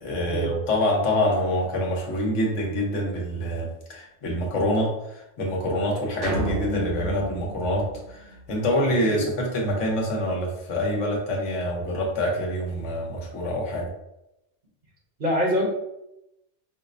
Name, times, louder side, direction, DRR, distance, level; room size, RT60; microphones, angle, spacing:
voice 1, 0.0-13.9, equal, 80° left, -1 dB, 1.2 m, -26 dB
sound 1, 6.2-8.7, equal, 75° right, 1.2 m, -31 dB
voice 2, 15.2-15.6, equal, 50° right, -3 dB, 1.0 m, -24 dB
5.1 x 2.0 x 2.5 m, 0.86 s
omnidirectional pair, 1.2 m